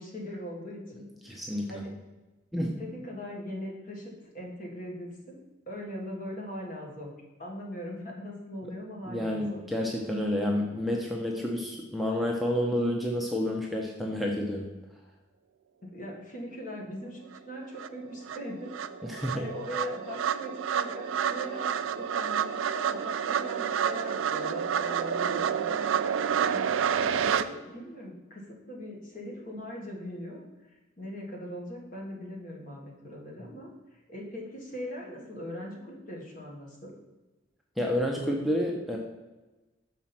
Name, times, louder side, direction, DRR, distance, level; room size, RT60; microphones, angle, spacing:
voice 1, 0.0-1.4 1.7-1.9 2.8-5.4 5.7-7.1 7.4-9.6 15.9-18.7 19.1-25.9 26.1-36.9, equal, 45° left, -1 dB, 1.6 m, -40 dB
voice 2, 1.2-1.7 2.5-2.7 9.1-14.7 19.1-19.4 37.8-39.0, left 1 dB, ahead, -1 dB, 0.6 m, -29 dB
sound 1, 17.3-17.4 17.8-27.4, right 8 dB, 80° right, 0.4 m, -29 dB
6.1 x 4.1 x 5.9 m, 1.1 s
head